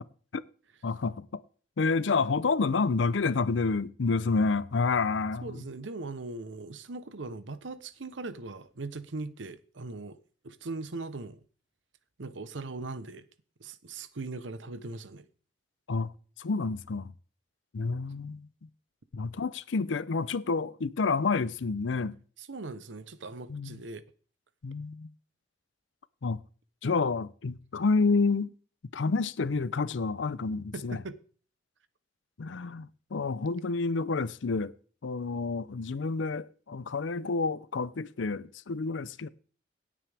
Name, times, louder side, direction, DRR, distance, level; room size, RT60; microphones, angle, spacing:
voice 1, 0.8-1.4 1.8-5.5 15.9-16.1 16.4-17.1 17.7-18.5 19.1-22.2 23.5-23.8 24.6-25.1 26.2-26.4 26.8-28.5 28.9-31.0 32.4-34.7 35.0-39.3, left 4 dB, 85° left, 0.6 m, -29 dB
voice 2, 5.4-10.2 10.4-11.4 12.2-13.2 13.6-15.3 22.4-24.1 30.7-31.2, right 3 dB, 90° right, 0.8 m, -40 dB
17.0 x 8.7 x 3.4 m
head